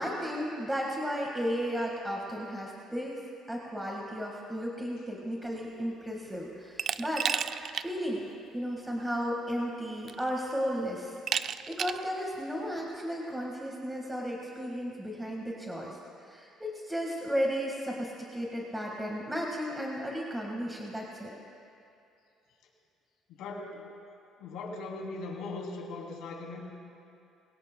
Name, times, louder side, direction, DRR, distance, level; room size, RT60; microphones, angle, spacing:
voice 1, 0.0-3.2 3.5-8.3 8.5-21.3, equal, 10° right, -2 dB, 1.7 m, -34 dB
Glass, 6.8-7.9 8.3-8.4 9.5-9.6 10.1-10.5 11.3-12.1, right 8 dB, 50° right, 0.4 m, -32 dB
voice 2, 23.3-23.9 24.4-26.6, left 3 dB, 75° left, -1 dB, 2.9 m, -39 dB
22.5 x 17.5 x 2.3 m, 2.6 s
cardioid pair, 110°, 0 cm